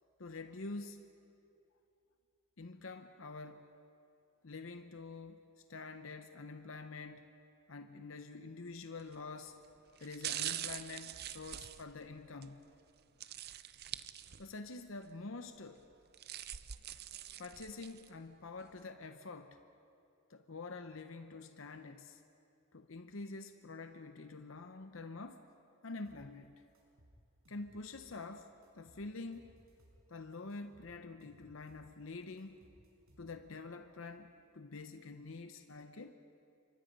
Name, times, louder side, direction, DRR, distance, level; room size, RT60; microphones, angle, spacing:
voice 1, 0.2-1.0 2.6-3.7 4.4-7.3 7.7-9.5 10.0-12.6 14.4-15.8 17.4-19.6 20.3-22.2 22.7-25.5 25.8-26.5 27.5-29.5 30.1-32.6 33.2-36.1, left 3 dB, 65° left, 8 dB, 0.9 m, -47 dB
sound 1, 9.0-9.3 10.0-12.5 13.2-14.7 15.0-15.1 15.9-18.1 18.6-18.7, right 11 dB, 50° right, 0.6 m, -44 dB
sound 2, 26.0-26.3 26.7-28.2 28.6-30.0 30.5-31.9 32.4-33.6, equal, 75° right, 6.0 m, -64 dB
28.0 x 24.5 x 5.4 m, 2.6 s
head